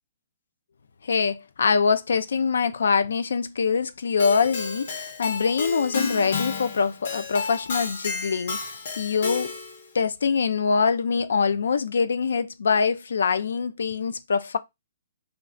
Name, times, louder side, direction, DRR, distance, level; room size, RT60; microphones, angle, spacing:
voice 1, 1.0-9.6 9.9-14.6, left 5 dB, 80° left, 0.4 m, -24 dB
Keyboard (musical), 4.2-9.9, left 4 dB, 55° left, 0.7 m, -32 dB
2.3 x 2.2 x 3.6 m
hypercardioid pair, 165°, 0 cm